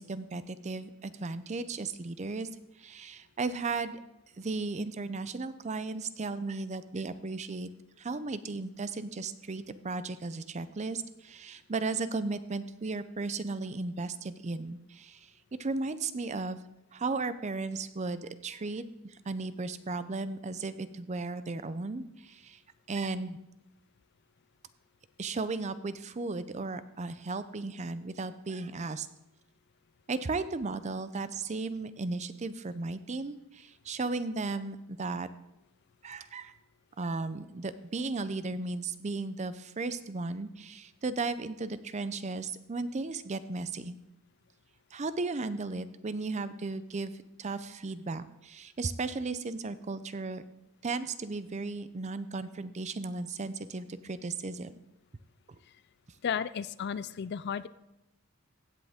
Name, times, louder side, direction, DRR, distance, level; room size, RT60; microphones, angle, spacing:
voice 1, 0.0-2.5 2.8-4.0 4.4-7.7 8.0-15.3 15.6-16.6 16.9-18.8 19.3-22.6 22.9-23.4 25.2-29.1 30.1-35.3 36.0-36.5 37.0-44.0 44.9-47.1 47.4-50.4 50.8-54.7, right 3 dB, 30° right, 13 dB, 0.5 m, -35 dB
voice 2, 56.2-57.7, left 7 dB, 50° left, 16 dB, 0.4 m, -33 dB
15.5 x 8.7 x 3.6 m, 0.90 s
head